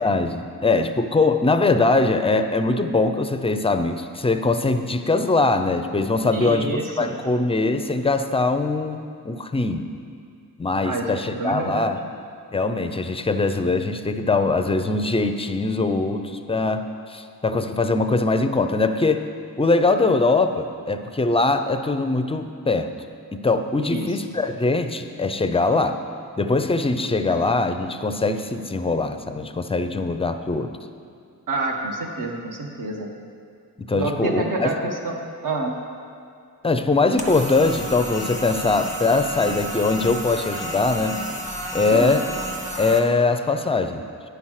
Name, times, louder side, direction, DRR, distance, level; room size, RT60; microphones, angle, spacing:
voice 1, 0.0-9.9 10.6-12.0 12.5-19.3 19.6-22.9 23.3-26.0 26.4-30.7 33.8-34.7 36.6-41.2 41.7-42.3 42.8-44.0, left 3 dB, 15° left, 8 dB, 0.4 m, -22 dB
voice 2, 6.3-7.2 10.8-11.9 23.8-24.3 27.3-27.4 31.5-33.1 33.9-35.8 41.9-42.2, right 2 dB, 60° right, 1 dB, 1.2 m, -28 dB
sound 1, 37.2-43.0, right 1 dB, 20° right, 1.1 m, -31 dB
9.6 x 5.7 x 6.3 m, 2.3 s
wide cardioid pair, 100°, 37 cm